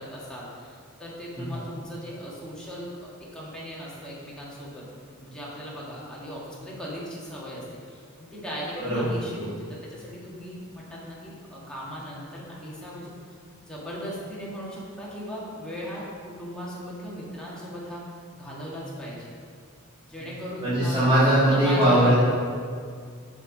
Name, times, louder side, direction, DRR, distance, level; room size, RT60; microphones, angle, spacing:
voice 1, 0.0-4.9 5.1-13.1 13.6-18.0 18.3-19.3 20.1-21.0 21.5-22.2, equal, 5° left, -7 dB, 1.7 m, -38 dB
voice 2, 8.8-9.2 20.6-22.2, right 1 dB, 25° right, -14 dB, 2.1 m, -20 dB
7.1 x 5.5 x 5.0 m, 2.2 s
head